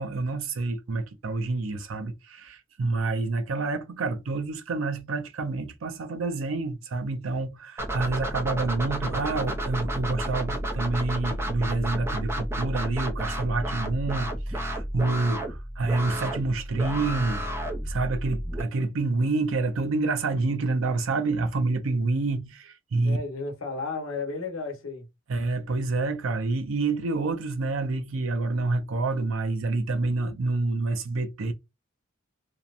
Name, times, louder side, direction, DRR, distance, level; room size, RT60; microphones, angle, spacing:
voice 1, 0.0-17.4 17.9-23.2 25.3-31.5, right 3 dB, 80° right, 0.5 m, -28 dB
sound 1, 7.8-18.6, right 1 dB, 15° right, 0.4 m, -31 dB
voice 2, 23.0-25.1, left 3 dB, 85° left, 0.9 m, -33 dB
2.8 x 2.0 x 2.4 m
head